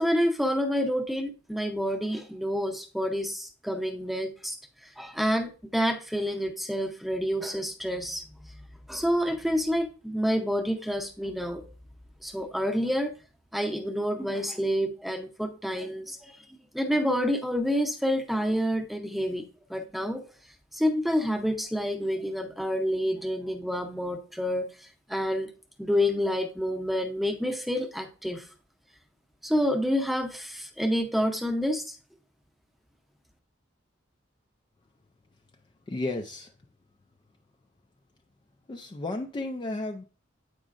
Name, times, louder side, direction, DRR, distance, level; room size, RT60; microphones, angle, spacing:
voice 1, 0.0-4.6 4.8-8.2 8.9-11.6 12.2-13.1 13.5-16.4 16.7-19.4 19.7-20.2 20.7-25.5 25.8-28.5 29.4-31.9, equal, ahead, 5 dB, 0.7 m, -28 dB
voice 2, 35.9-36.5 38.7-40.0, left 2 dB, 25° left, 4 dB, 0.3 m, -33 dB
8.3 x 5.0 x 2.5 m, 0.36 s
head